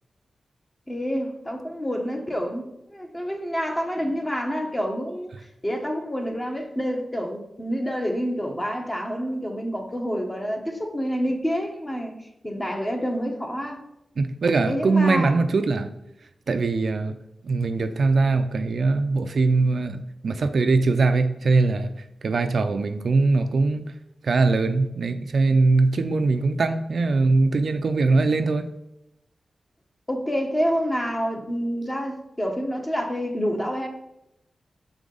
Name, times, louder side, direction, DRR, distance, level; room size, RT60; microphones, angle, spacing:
voice 1, 0.9-12.1 12.4-13.8 14.7-15.3 30.1-33.9, equal, 20° left, 2 dB, 1.2 m, -28 dB
voice 2, 14.2-15.9 16.5-17.1 17.4-21.9 22.2-23.8 24.2-28.7, right 3 dB, 65° right, 8 dB, 0.5 m, -21 dB
6.3 x 4.9 x 3.9 m, 0.85 s
wide cardioid pair, 100°, 0 cm